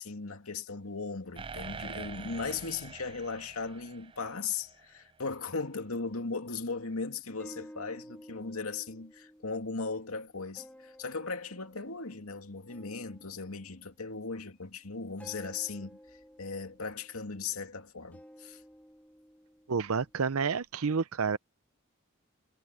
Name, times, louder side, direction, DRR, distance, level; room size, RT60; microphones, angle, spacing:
voice 1, 0.0-16.0 16.4-18.6, left 4 dB, 85° left, 2.4 m, -37 dB
sound 1, 1.4-5.0, right 5 dB, 25° right, 0.4 m, -45 dB
sound 2, 7.4-14.5 15.2-17.8 18.1-20.7, equal, 5° left, 1.6 m, -54 dB
voice 2, 19.7-21.4, right 5 dB, 85° right, 0.7 m, -29 dB
head